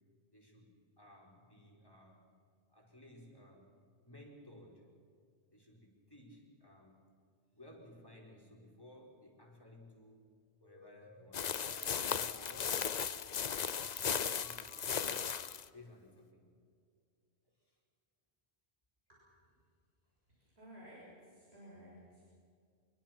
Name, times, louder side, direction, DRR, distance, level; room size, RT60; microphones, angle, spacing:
voice 1, 0.3-2.3 2.7-3.7 4.0-4.9 5.5-7.0 7.5-13.9 14.4-15.2 15.7-16.5 17.4-17.8, left 1 dB, 20° left, -1 dB, 4.8 m, -58 dB
sound 1, 10.6-15.6, left 1 dB, 65° left, 3.5 m, -60 dB
sound 2, 11.3-15.7, left 7 dB, 45° left, 0.7 m, -36 dB
voice 2, 20.6-22.3, equal, 70° right, -6 dB, 6.9 m, -55 dB
26.5 x 22.5 x 6.0 m, 2.3 s
omnidirectional pair, 1.1 m